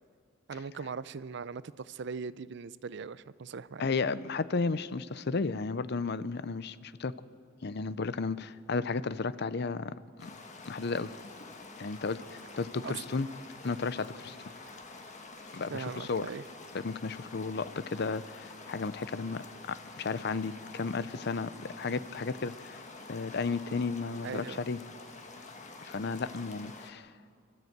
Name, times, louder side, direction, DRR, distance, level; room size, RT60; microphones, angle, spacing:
voice 1, 0.5-3.9 12.8-13.2 15.5-16.4 24.2-24.6, right 5 dB, 65° right, 17 dB, 0.5 m, -40 dB
voice 2, 3.8-7.1 7.6-9.9 10.2-10.3 10.6-11.1 11.8-13.3 13.6-14.4 15.5-16.3 16.8-22.8 23.1-24.8 25.8-27.1, left 4 dB, 55° left, 16 dB, 0.6 m, -33 dB
sound 1, 10.2-26.9, left 3 dB, 40° left, 1.6 m, -48 dB
26.5 x 12.5 x 8.0 m, 2.2 s
head